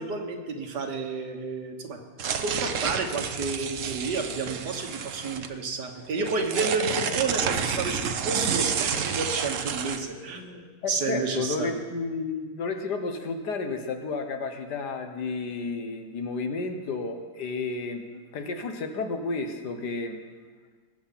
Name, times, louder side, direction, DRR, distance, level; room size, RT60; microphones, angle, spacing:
voice 1, 0.0-2.0 2.4-11.9, right 4 dB, 85° right, 3 dB, 2.0 m, -31 dB
sound 1, 2.2-5.5 6.0-10.0, right 7 dB, 55° right, 1.1 m, -29 dB
voice 2, 10.8-20.2, left 3 dB, 80° left, 5 dB, 1.8 m, -32 dB
20.5 x 8.0 x 5.8 m, 1.4 s
omnidirectional pair, 1.8 m